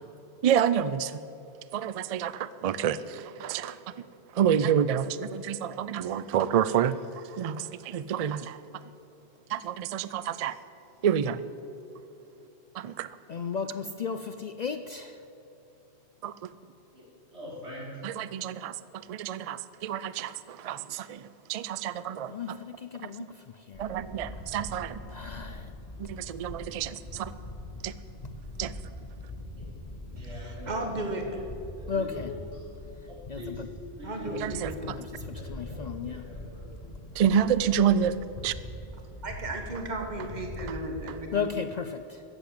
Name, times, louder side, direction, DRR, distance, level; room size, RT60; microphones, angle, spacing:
voice 1, 0.4-1.2 1.7-4.0 4.3-8.6 9.5-10.6 11.0-11.4 12.7-13.2 16.2-16.5 18.0-22.6 23.0-23.1 23.8-25.0 26.0-27.3 27.8-27.9 28.6-28.7 34.4-35.0 37.2-38.2 38.4-38.5, right 8 dB, 65° right, 16 dB, 0.3 m, -28 dB
voice 2, 13.3-15.2 22.3-23.9 25.1-25.7 31.9-32.3 33.3-33.7 34.8-36.3 41.3-42.2, left 6 dB, 55° left, 9 dB, 0.5 m, -35 dB
voice 3, 17.3-18.0 29.5-29.6 30.1-31.0 31.8-32.6 33.4-33.6 34.0-34.6 35.1-36.8, left 1 dB, 85° right, -5 dB, 4.3 m, -43 dB
sound 1, 23.7-41.2, left 1 dB, 35° left, 1.5 m, -42 dB
voice 4, 30.2-31.4 34.0-34.9 39.2-41.5, right 2 dB, 40° right, 3 dB, 1.5 m, -35 dB
14.0 x 8.0 x 8.5 m, 2.9 s
omnidirectional pair, 1.1 m